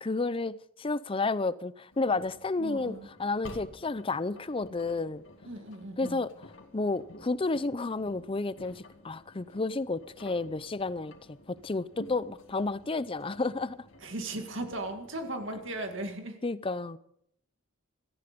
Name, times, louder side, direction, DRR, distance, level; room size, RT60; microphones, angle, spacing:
voice 1, 0.0-5.2 6.0-6.3 6.7-11.1 11.5-13.8 16.4-17.0, left 3 dB, 25° left, 0.5 m, -31 dB
Engine, 1.9-16.1, left 1 dB, 65° left, 2.2 m, -52 dB
voice 2, 2.6-3.1 5.4-6.3 14.0-16.4, right 1 dB, 60° right, 2.1 m, -37 dB
17.0 x 14.0 x 5.2 m
head